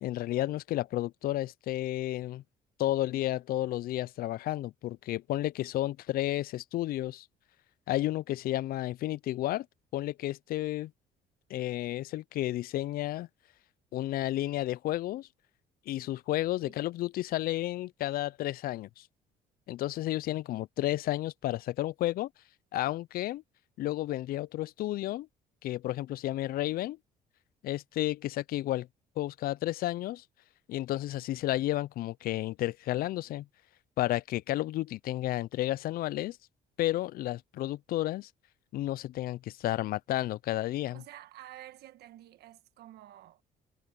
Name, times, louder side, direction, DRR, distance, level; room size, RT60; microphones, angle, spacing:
voice 1, 0.0-2.4 2.8-7.3 7.9-9.7 9.9-10.9 11.5-13.3 13.9-15.3 15.9-19.1 19.7-22.3 22.7-23.4 23.8-25.3 25.6-27.0 27.6-28.9 29.2-30.2 30.7-33.5 34.0-36.4 36.8-38.3 38.7-41.0, left 15 dB, 60° left, 0.4 m, -32 dB
voice 2, 40.9-43.4, right 13 dB, 70° right, 1.5 m, -50 dB
cardioid pair, 110°, 17 cm